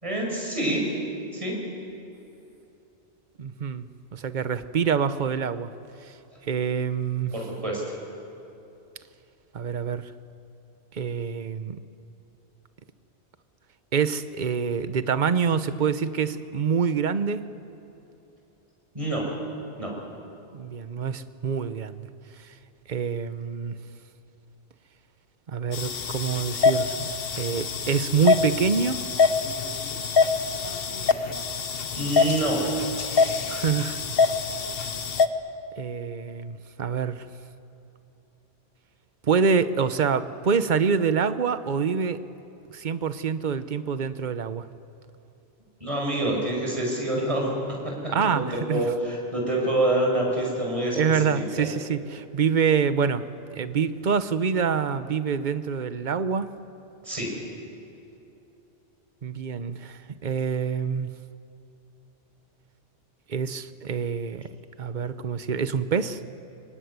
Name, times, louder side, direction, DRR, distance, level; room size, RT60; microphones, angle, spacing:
voice 1, 0.0-1.0 1.3-1.5 7.3-7.8 18.9-19.3 19.8-20.0 32.0-32.7 45.8-47.5 48.2-51.2 51.6-51.7 57.0-57.3, right 1 dB, 30° right, -2 dB, 5.4 m, -26 dB
voice 2, 3.4-5.7 6.4-7.4 9.5-10.1 10.9-11.8 13.9-17.4 20.5-22.1 22.9-23.8 25.5-27.1 27.3-29.0 33.5-34.0 35.8-37.2 39.2-42.2 42.7-44.7 48.1-48.8 51.0-53.2 53.5-56.5 59.2-61.1 63.3-64.5 64.8-66.2, right 6 dB, 45° right, 12 dB, 1.0 m, -26 dB
sound 1, 25.7-35.3, left 5 dB, 60° left, 1.2 m, -25 dB
25.5 x 23.5 x 9.6 m, 2.8 s
omnidirectional pair, 1.1 m